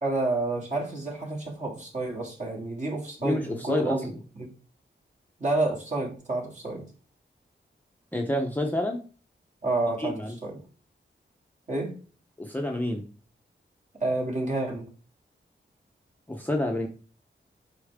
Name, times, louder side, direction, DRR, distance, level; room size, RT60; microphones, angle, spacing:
voice 1, 0.0-4.0 4.4-4.5 5.4-6.8 9.6-10.2 10.4-10.6 11.7-11.9 14.0-14.8, right 2 dB, 40° right, -1 dB, 2.8 m, -29 dB
voice 2, 3.2-4.2 8.1-9.0 10.0-10.4 12.4-13.0 16.3-16.9, left 1 dB, 10° left, 1 dB, 0.9 m, -28 dB
8.3 x 4.8 x 3.6 m, 0.39 s
wide cardioid pair, 110°, 20 cm